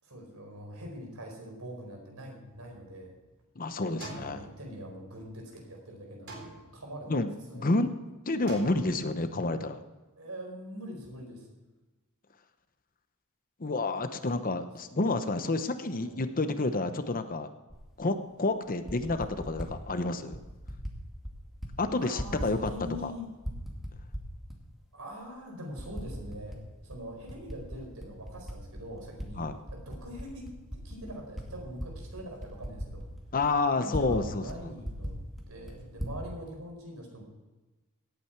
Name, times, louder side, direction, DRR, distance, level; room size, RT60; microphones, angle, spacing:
voice 1, 0.0-3.1 3.9-6.4 6.7-7.2 7.5-7.9 10.2-11.5 14.3-14.4 14.9-15.0 16.0-16.2 22.0-23.3 24.9-33.1 33.7-35.2 35.5-37.2, equal, 75° right, 1 dB, 4.7 m, -43 dB
sound 1, 2.5-3.4 4.0-5.3 6.3-7.2 8.5-9.4, right 2 dB, 60° right, 4.0 m, -47 dB
voice 2, 3.6-4.4 7.1-7.9 8.3-9.8 13.6-17.5 18.0-20.4 21.8-22.7 23.0-23.1 29.4-29.5 33.3-34.7, left 2 dB, 40° left, 9 dB, 0.9 m, -29 dB
Typing, 17.7-17.8 18.7-19.7 20.3-21.0 21.2-21.7 22.0-23.1 23.4-24.6 25.1-25.2 25.8-26.6 26.9-29.3 29.6-34.2 34.5-34.6 34.8-36.2, equal, ahead, 2.3 m, -39 dB
18.0 x 8.8 x 4.7 m, 1.2 s
head